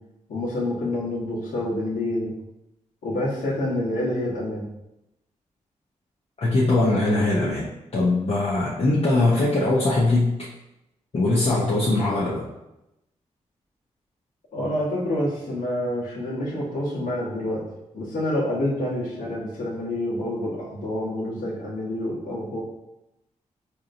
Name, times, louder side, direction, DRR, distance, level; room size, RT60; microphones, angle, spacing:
voice 1, 0.3-2.3 3.0-4.6 8.6-8.7 14.5-17.6 17.9-22.6, left 1 dB, 90° left, -7 dB, 1.3 m, -27 dB
voice 2, 6.4-10.5 11.1-12.4, left 2 dB, 50° left, -6 dB, 0.8 m, -21 dB
4.5 x 2.9 x 2.6 m, 0.90 s
cardioid pair, 55°, 13 cm